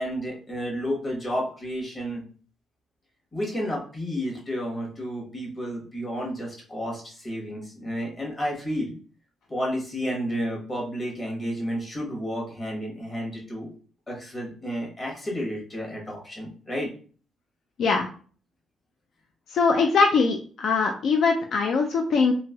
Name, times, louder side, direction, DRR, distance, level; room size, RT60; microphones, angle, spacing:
voice 1, 0.0-2.2 3.3-8.9 9.5-13.7 14.1-16.9, equal, 25° left, -2 dB, 1.1 m, -31 dB
voice 2, 19.5-22.3, left 4 dB, 60° left, 3 dB, 0.3 m, -22 dB
3.1 x 2.9 x 2.2 m, 0.41 s
cardioid pair, 150°, 0 cm